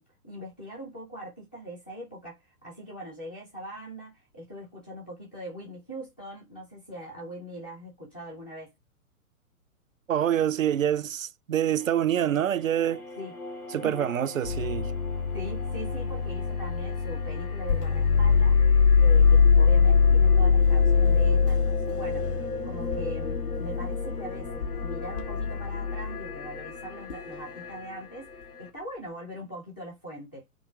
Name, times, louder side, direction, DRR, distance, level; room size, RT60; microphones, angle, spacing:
voice 1, 0.0-8.7 13.2-13.3 13.8-14.1 15.3-18.6 19.0-22.3 22.6-28.3 28.6-30.4, right 1 dB, 10° left, 0.4 m, -41 dB
voice 2, 10.1-13.0 13.7-14.9, right 10 dB, 65° right, 0.5 m, -26 dB
sound 1, 11.8-28.7, left 3 dB, 85° left, 1.5 m, -39 dB
sound 2, 14.4-26.2 27.1-27.4, left 5 dB, 55° left, 1.3 m, -23 dB
3.8 x 3.0 x 4.5 m
figure-of-eight pair, 120°, 44 cm